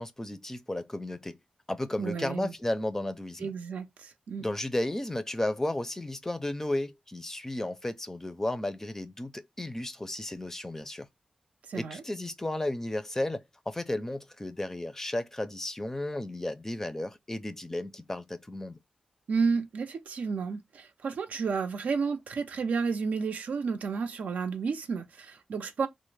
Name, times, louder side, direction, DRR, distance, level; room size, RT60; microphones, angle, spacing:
voice 1, 0.0-1.4 1.7-3.5 4.4-11.1 11.7-18.8, left 1 dB, 15° left, 0.4 m, -33 dB
voice 2, 2.0-2.5 3.4-4.5 11.7-12.0 19.3-25.9, right 5 dB, 85° right, 0.5 m, -31 dB
3.1 x 2.0 x 3.2 m
wide cardioid pair, 85°, 2 cm